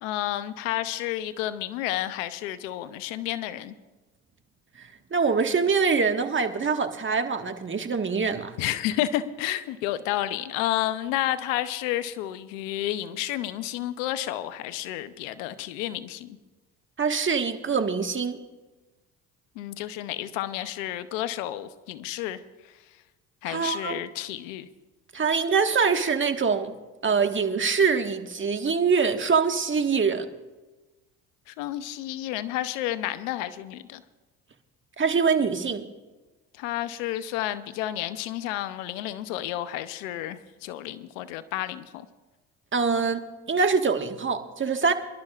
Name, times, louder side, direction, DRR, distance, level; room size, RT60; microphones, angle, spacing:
voice 1, 0.0-3.8 8.6-16.4 19.6-22.4 23.4-24.7 31.5-34.0 36.6-42.1, left 13 dB, 85° left, 13 dB, 0.8 m, -31 dB
voice 2, 5.1-8.5 17.0-18.4 23.4-24.0 25.1-26.7 27.0-30.3 35.0-35.9 42.7-43.2 43.5-44.9, right 5 dB, 30° right, 6 dB, 1.6 m, -24 dB
26.5 x 12.0 x 2.4 m, 1.2 s
hypercardioid pair, 65°, 38 cm